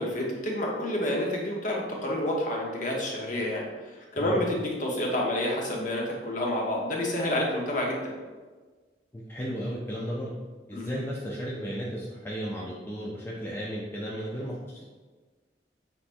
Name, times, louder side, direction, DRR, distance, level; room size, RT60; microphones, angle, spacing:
voice 1, 0.0-3.6 4.1-8.2 10.7-11.0, left 1 dB, 45° left, -1 dB, 0.9 m, -29 dB
voice 2, 9.1-10.4 10.7-14.8, equal, 10° left, -5 dB, 0.4 m, -34 dB
5.6 x 3.4 x 2.5 m, 1.4 s
head